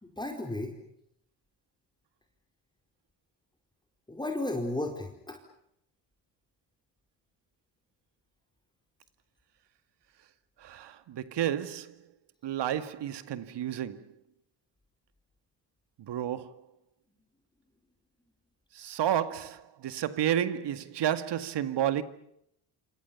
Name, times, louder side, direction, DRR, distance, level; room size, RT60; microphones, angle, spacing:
voice 1, 0.0-0.7 4.1-5.4, left 2 dB, 10° left, 4.6 m, -34 dB
voice 2, 10.6-12.0 12.4-14.0 16.1-16.5 18.7-22.0, right 10 dB, 65° right, 2.1 m, -31 dB
28.0 x 27.0 x 7.1 m
cardioid pair, 100°, 44 cm